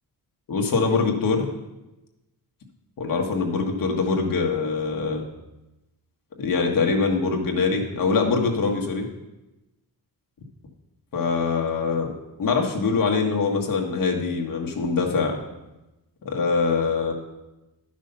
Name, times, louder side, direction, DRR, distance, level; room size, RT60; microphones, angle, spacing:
voice 1, 0.5-1.5 3.0-5.2 6.4-9.1 11.1-12.1 12.4-15.4 16.2-17.1, left 4 dB, 60° left, 1 dB, 1.7 m, -23 dB
11.5 x 6.3 x 5.5 m, 0.99 s
wide cardioid pair, 150°, 37 cm